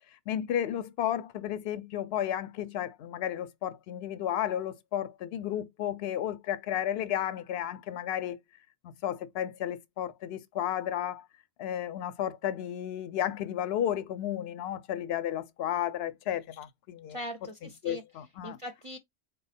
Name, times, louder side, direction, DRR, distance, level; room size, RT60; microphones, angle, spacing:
voice 1, 0.3-8.4 8.8-11.3 11.6-17.2 17.8-18.6, left 10 dB, 75° left, 0.8 m, -33 dB
voice 2, 17.1-18.0 18.4-19.0, equal, 40° right, 0.5 m, -40 dB
4.2 x 2.2 x 4.1 m
omnidirectional pair, 1.1 m